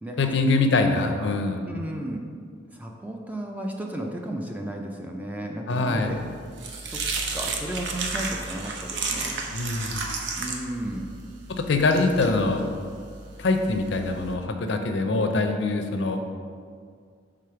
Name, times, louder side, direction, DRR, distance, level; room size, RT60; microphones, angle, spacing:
voice 1, 0.2-1.6 5.7-6.1 9.5-10.1 11.6-12.7 13.4-16.2, left 3 dB, 60° left, 5 dB, 0.5 m, -24 dB
voice 2, 1.7-2.2 2.7-6.2 6.9-7.0 7.3-9.4 10.4-11.1, right 1 dB, 10° right, 1 dB, 0.3 m, -34 dB
sound 1, 6.1-14.3, right 4 dB, 60° right, 0.6 m, -33 dB
4.9 x 3.8 x 5.7 m, 2.1 s
head